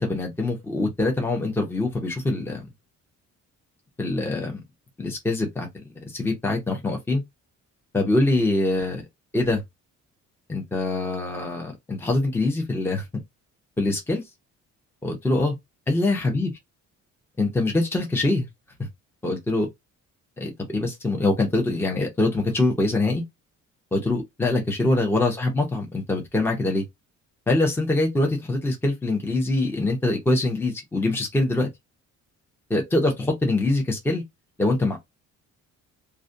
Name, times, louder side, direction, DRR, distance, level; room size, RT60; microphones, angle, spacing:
voice 1, 0.0-2.6 4.0-4.6 5.0-5.7 6.1-7.2 7.9-9.0 9.3-9.6 10.5-13.1 13.8-14.2 15.0-15.6 15.9-16.5 17.4-18.5 19.2-19.7 20.4-23.2 23.9-26.8 27.5-31.7 32.7-34.2 34.6-35.0, left 2 dB, 5° left, 0.6 m, -24 dB
2.3 x 2.2 x 2.6 m
cardioid pair, 145°, 31 cm